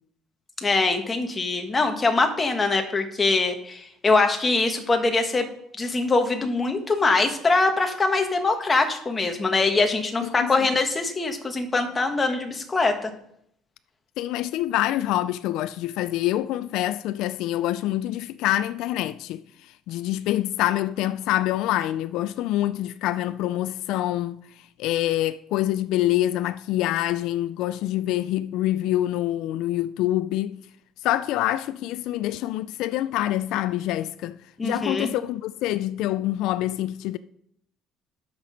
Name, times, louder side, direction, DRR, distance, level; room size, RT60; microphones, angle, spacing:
voice 1, 0.6-5.5 5.8-13.1 34.6-35.1, left 3 dB, 20° left, 1.5 m, -23 dB
voice 2, 10.2-10.6 14.2-24.4 24.8-30.6 31.0-34.4 34.6-37.2, left 14 dB, 75° left, 0.3 m, -26 dB
12.0 x 6.0 x 5.2 m
cardioid pair, 125°, 0 cm